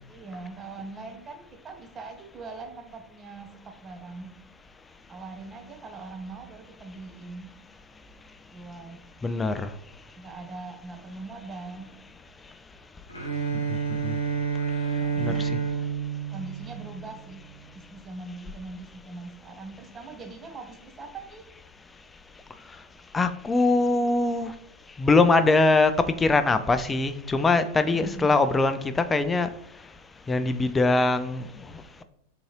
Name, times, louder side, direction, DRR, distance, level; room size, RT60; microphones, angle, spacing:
voice 1, 0.1-4.3 5.1-7.6 8.5-9.0 10.2-11.9 14.9-15.7 16.3-17.5 17.7-21.5 27.8-28.4, right 3 dB, 20° right, 5 dB, 0.6 m, -41 dB
voice 2, 9.2-10.2 12.4-12.6 13.3-15.5 21.9-24.6 24.9-32.0, left 3 dB, 15° left, 10 dB, 0.3 m, -24 dB
Bowed string instrument, 13.1-17.2, right 6 dB, 85° left, 0.8 m, -29 dB
3.8 x 3.7 x 2.9 m, 0.72 s
figure-of-eight pair, 90°, 0 cm